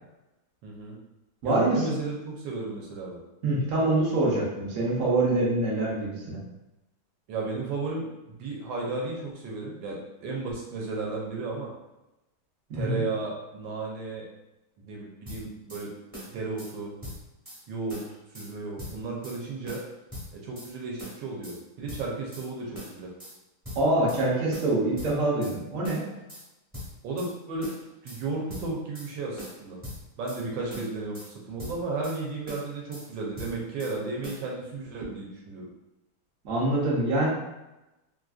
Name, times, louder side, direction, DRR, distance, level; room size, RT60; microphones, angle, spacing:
voice 1, 0.6-1.0 1.4-3.2 7.3-11.7 12.7-14.2 14.9-15.9 16.3-16.9 17.7-18.0 18.3-19.8 20.4-23.1 27.0-27.7 28.0-29.8 30.2-35.7, right 3 dB, 75° right, -2 dB, 1.3 m, -34 dB
voice 2, 1.4-1.8 3.4-6.4 12.7-13.0 23.7-26.0 36.4-37.3, right 2 dB, 55° right, -5 dB, 0.9 m, -25 dB
sound 1, 15.3-15.8 16.1-16.7 17.0-17.6 17.9-18.5 18.8-19.4 19.7-20.7 21.0-21.6 21.9-22.5 22.7-23.4 23.6-24.2 24.5-25.6 25.8-26.4 26.7-27.3 27.6-28.2 28.5-29.1 29.4-30.4 30.7-31.3 31.6-32.2 32.5-33.1 33.4-34.0 34.2-34.4, left 1 dB, 15° right, 0.7 m, -41 dB
3.2 x 2.5 x 2.3 m, 0.97 s
omnidirectional pair, 2.2 m